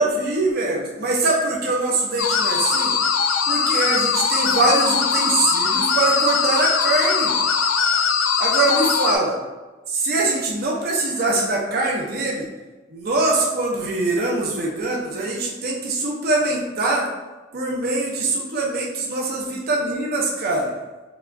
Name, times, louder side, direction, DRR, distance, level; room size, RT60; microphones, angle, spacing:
voice 1, 0.0-2.9 3.5-7.4 8.4-9.4 9.9-12.5 12.9-17.1 17.5-20.7, right 2 dB, 50° right, -2 dB, 0.5 m, -23 dB
sound 1, 2.2-9.2, left 6 dB, 80° left, 0.4 m, -21 dB
4.8 x 2.2 x 2.5 m, 1.2 s
head